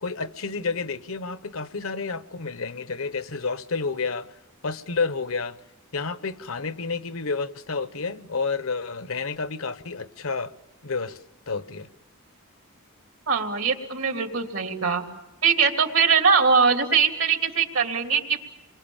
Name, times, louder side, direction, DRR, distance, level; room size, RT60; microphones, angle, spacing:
voice 1, 0.0-4.3 4.6-5.6 5.9-10.5 10.8-11.2 11.5-11.9, left 4 dB, 75° left, 1.1 m, -30 dB
voice 2, 13.3-15.0 15.4-18.4, right 5 dB, 70° right, 3.1 m, -21 dB
29.0 x 23.5 x 7.3 m
head